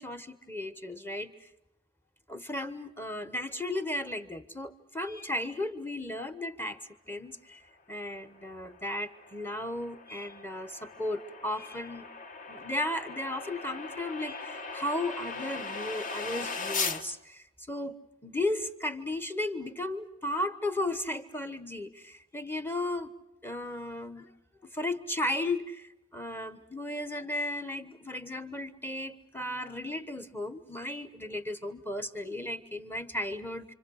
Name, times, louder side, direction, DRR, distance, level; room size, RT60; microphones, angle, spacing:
voice 1, 0.0-1.3 2.3-6.8 7.1-7.6 7.9-12.1 12.5-18.0 18.2-23.1 23.4-24.3 24.6-33.7, left 1 dB, 10° left, 10 dB, 1.1 m, -35 dB
sound 1, 8.3-17.0, left 4 dB, 35° left, 1.3 m, -39 dB
28.5 x 25.5 x 6.4 m, 0.88 s
head